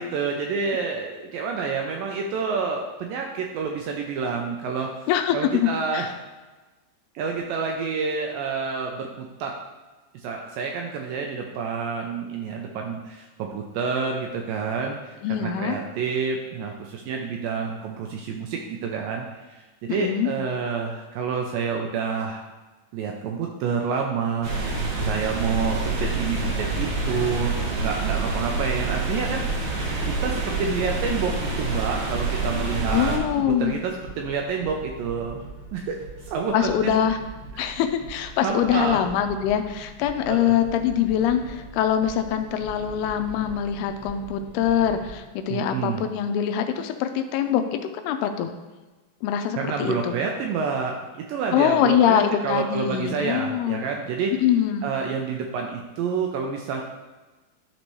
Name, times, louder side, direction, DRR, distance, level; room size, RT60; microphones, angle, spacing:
voice 1, 0.0-5.0 5.3-6.1 7.2-9.5 10.1-13.3 13.5-19.3 19.8-22.5 22.9-24.7 25.0-29.7 30.0-35.4 35.7-36.0 36.2-36.9 37.5-37.6 38.4-39.0 40.3-40.6 45.5-46.1 49.6-54.3 54.8-56.8, right 5 dB, 80° right, 1 dB, 2.0 m, -28 dB
voice 2, 5.1-6.1 15.2-15.8 19.9-20.3 32.9-33.8 36.5-37.2 37.6-48.5 49.2-50.1 51.5-53.8 54.4-54.9, left 9 dB, 85° left, 7 dB, 2.6 m, -23 dB
sound 1, 24.4-33.2, right 3 dB, 65° right, 2.2 m, -27 dB
sound 2, 28.2-45.2, right 4 dB, 40° right, 1.5 m, -42 dB
12.0 x 4.2 x 3.1 m, 1.2 s
omnidirectional pair, 4.5 m